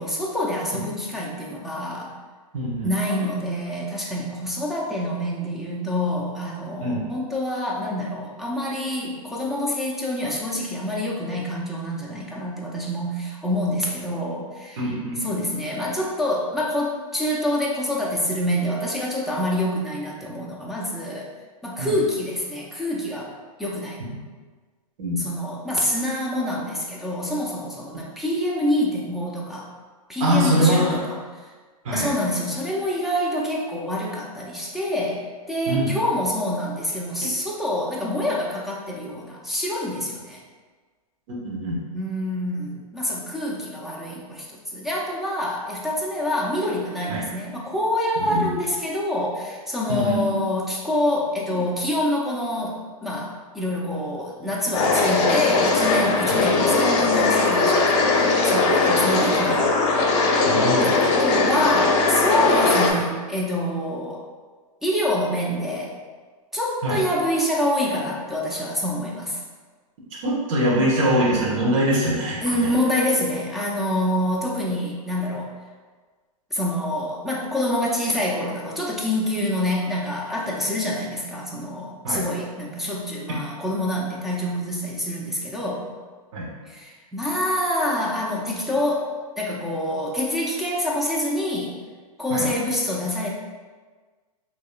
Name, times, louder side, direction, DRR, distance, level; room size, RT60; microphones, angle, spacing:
voice 1, 0.0-2.1 2.8-21.3 21.6-23.3 23.6-24.0 25.2-29.7 30.1-31.5 31.9-40.4 41.9-44.5 44.7-59.6 60.8-64.2 64.8-66.0 66.5-69.4 72.4-75.5 76.5-85.9 86.7-89.1 89.4-91.7 92.2-93.3, left 1 dB, ahead, -5 dB, 0.6 m, -26 dB
voice 2, 2.5-2.9 6.8-7.1 14.8-15.2 21.8-21.9 25.0-25.2 30.2-31.0 31.8-32.1 35.7-35.9 37.2-37.3 41.3-41.8 47.1-47.2 48.3-48.5 49.9-50.2 56.3-56.4 60.5-60.9 66.8-67.0 70.2-72.7 82.0-82.2 86.3-86.5 92.3-92.5, right 1 dB, 55° right, -5 dB, 1.3 m, -23 dB
sound 1, 54.7-62.9, left 3 dB, 45° left, 0.8 m, -19 dB
5.2 x 3.0 x 2.4 m, 1.4 s
hypercardioid pair, 125°, 20 cm